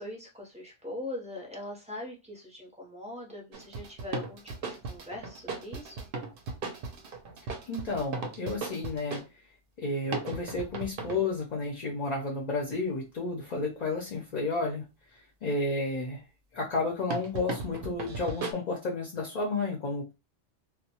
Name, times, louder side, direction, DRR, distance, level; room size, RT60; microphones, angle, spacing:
voice 1, 0.0-6.1, left 1 dB, 10° right, -3 dB, 0.5 m, -41 dB
sound 1, 3.5-9.3 10.1-11.3 17.1-18.5, right 3 dB, 60° right, 0.7 m, -37 dB
voice 2, 7.7-9.2 9.8-14.8 15.4-16.2 16.5-20.1, left 3 dB, 45° left, -1 dB, 0.6 m, -31 dB
2.2 x 2.1 x 2.8 m, 0.27 s
omnidirectional pair, 1.2 m